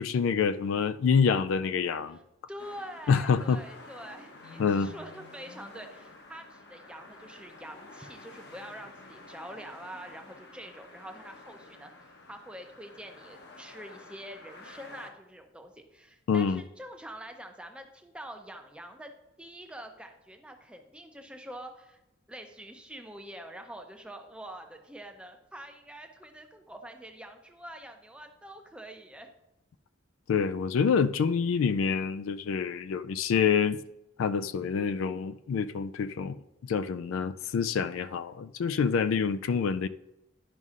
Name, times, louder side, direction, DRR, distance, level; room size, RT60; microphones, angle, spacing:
voice 1, 0.0-2.2 3.1-3.6 4.6-4.9 16.3-16.6 30.3-33.8 34.2-39.9, left 6 dB, 75° left, 0.3 m, -27 dB
voice 2, 2.5-11.9 12.3-19.1 19.4-22.0 22.3-29.3, right 1 dB, 5° right, 0.5 m, -45 dB
sound 1, 2.6-15.1, left 2 dB, 55° left, 0.9 m, -50 dB
11.0 x 5.3 x 2.4 m
head